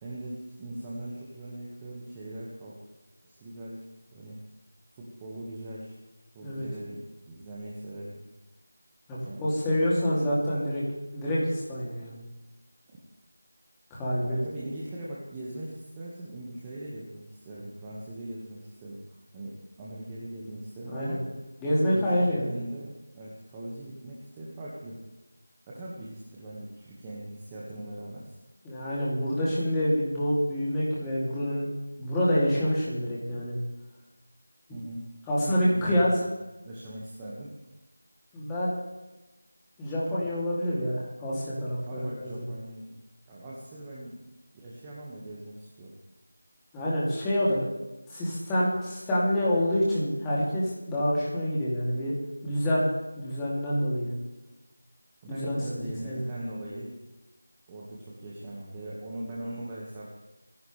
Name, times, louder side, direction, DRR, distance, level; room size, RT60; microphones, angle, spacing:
voice 1, 0.0-2.8 3.2-3.8 4.1-4.4 4.9-6.0 6.3-8.2 9.2-9.6 12.9-13.0 14.2-21.2 21.8-25.0 25.7-28.4 34.7-35.1 35.4-36.2 36.6-37.5 41.9-43.0 43.3-44.2 44.5-46.0 55.2-56.9 57.7-60.1, right 1 dB, 15° right, -6 dB, 1.8 m, -40 dB
voice 2, 9.1-10.8 11.1-12.1 13.9-14.4 20.9-21.2 21.6-22.5 28.6-31.6 32.0-33.6 35.3-36.1 38.3-38.7 39.8-42.4 46.7-47.7 48.1-52.1 52.4-52.8 53.1-54.1 55.3-56.2, equal, 10° left, -8 dB, 3.0 m, -27 dB
24.0 x 11.5 x 3.5 m, 1.1 s
figure-of-eight pair, 170°, 0 cm